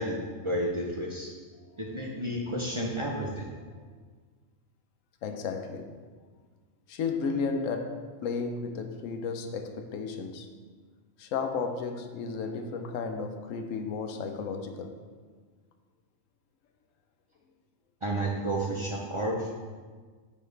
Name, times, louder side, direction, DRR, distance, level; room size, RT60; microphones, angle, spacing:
voice 1, 0.0-1.3 1.8-3.5 18.0-19.5, right 1 dB, 40° right, -2 dB, 0.5 m, -31 dB
voice 2, 5.2-5.9 6.9-10.5 11.2-15.0 19.1-19.2, left 5 dB, 90° left, 5 dB, 1.0 m, -33 dB
6.8 x 4.9 x 3.2 m, 1.5 s
omnidirectional pair, 1.3 m